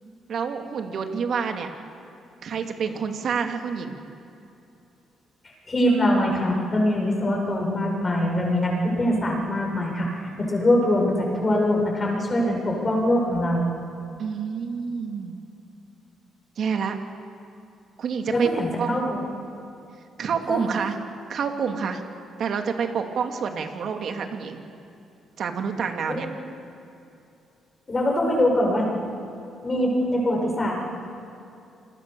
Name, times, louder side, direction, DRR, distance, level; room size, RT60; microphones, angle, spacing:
voice 1, 0.3-1.7 2.4-4.0 14.2-15.4 16.6-17.0 18.0-18.5 18.8-19.1 20.2-21.0 21.3-22.0 22.4-24.6 25.4-26.3, right 6 dB, 60° right, 5 dB, 2.6 m, -28 dB
voice 2, 5.7-13.7 18.3-19.2 20.5-20.6 26.1-26.3 27.9-28.9 29.6-30.7, left 1 dB, 30° left, 0 dB, 7.3 m, -23 dB
28.0 x 22.0 x 7.0 m, 2.7 s
cardioid pair, 90°, 0 cm